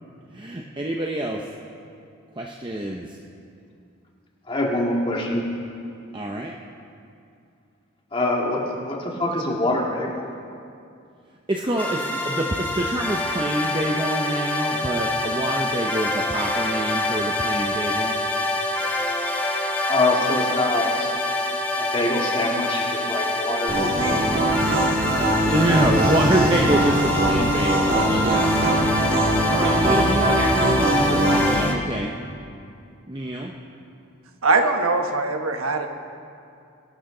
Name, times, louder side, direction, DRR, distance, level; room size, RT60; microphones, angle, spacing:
voice 1, 0.3-1.4 2.4-3.2 6.1-6.6 11.5-18.2 25.4-32.1 33.1-33.5, right 1 dB, 20° right, 0 dB, 0.7 m, -26 dB
voice 2, 4.5-5.4 8.1-10.3 19.9-21.1 21.8-24.2 28.4-28.5 29.4-29.5, left 2 dB, 25° left, -2 dB, 2.0 m, -25 dB
sound 1, 11.8-31.7, left 2 dB, 10° left, 1.0 m, -26 dB
sound 2, 23.7-31.6, right 1 dB, 40° right, 2.4 m, -21 dB
voice 3, 34.4-35.9, right 3 dB, 85° right, 5 dB, 1.2 m, -21 dB
23.5 x 12.0 x 3.9 m, 2.5 s
head